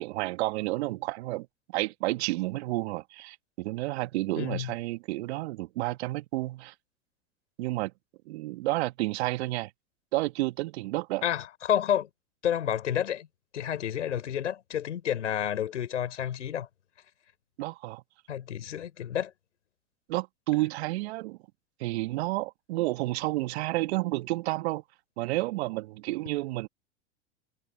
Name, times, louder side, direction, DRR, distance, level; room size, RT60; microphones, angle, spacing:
voice 1, 0.0-6.7 7.6-7.9 8.3-9.7 10.1-11.2 17.6-18.0 20.1-21.4 21.8-24.8 25.2-26.7, right 19 dB, 65° right, 2.0 m, -31 dB
voice 2, 4.4-4.7 11.2-12.1 12.4-13.3 13.5-16.7 18.3-19.3, left 10 dB, 80° left, 7.1 m, -30 dB
hypercardioid pair, 95°, 36 cm